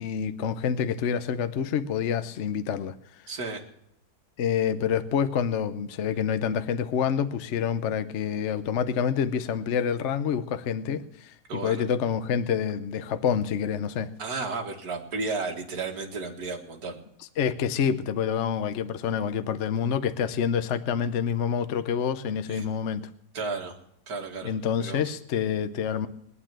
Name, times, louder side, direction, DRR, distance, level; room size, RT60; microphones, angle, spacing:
voice 1, 0.0-2.9 4.4-14.1 17.4-23.1 24.4-26.1, left 7 dB, 55° left, 11 dB, 0.9 m, -27 dB
voice 2, 3.3-3.6 11.5-11.8 14.2-17.0 22.5-22.6 23.3-23.8 24.1-24.5 24.8-25.0, right 3 dB, 65° right, 2 dB, 2.3 m, -33 dB
21.0 x 9.1 x 7.5 m, 0.75 s
omnidirectional pair, 1.8 m